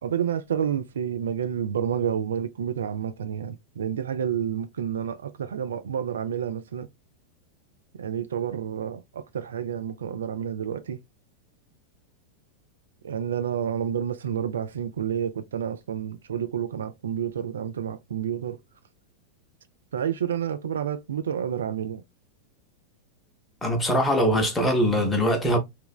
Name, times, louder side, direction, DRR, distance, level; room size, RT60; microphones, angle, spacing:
voice 1, 0.0-6.9 7.9-11.0 13.0-18.6 19.9-22.0, right 8 dB, 65° right, 0.3 m, -29 dB
voice 2, 23.6-25.6, equal, 10° left, 0.7 m, -22 dB
3.2 x 2.0 x 2.2 m
figure-of-eight pair, 90°, 0 cm